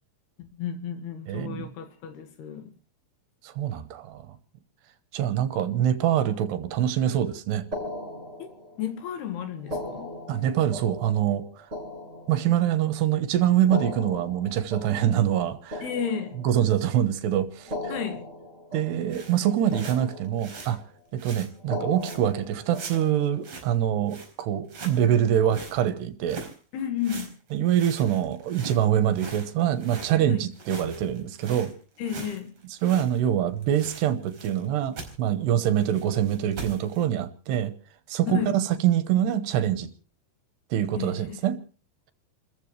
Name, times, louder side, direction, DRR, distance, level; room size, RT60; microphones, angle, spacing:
voice 1, 0.5-2.7 8.4-8.5 8.8-10.1 15.8-16.3 17.9-18.2 26.7-27.3 30.3-30.4 32.0-32.5 38.3-38.6 41.0-41.4, left 8 dB, 70° left, 3.7 m, -32 dB
voice 2, 1.3-1.7 3.4-4.4 5.1-7.7 10.3-11.5 12.3-15.8 16.4-17.9 18.7-20.8 21.1-26.4 27.5-31.7 32.8-37.7 38.1-39.9 40.7-41.6, right 10 dB, 75° right, 3.1 m, -25 dB
sound 1, 7.7-9.0 9.6-12.9 13.6-16.9 17.6-19.4 19.7-20.8 21.6-23.4, left 1 dB, 15° right, 7.1 m, -38 dB
sound 2, 19.0-20.7 21.2-21.5 22.0-22.3 22.7-23.7 24.1-24.3 24.7-25.8 26.3-26.6 27.0-30.1 30.5-33.2 33.5-34.7 35.0-35.1 35.6-37.0, right 4 dB, 35° right, 5.2 m, -42 dB
29.0 x 14.5 x 3.3 m
omnidirectional pair, 4.9 m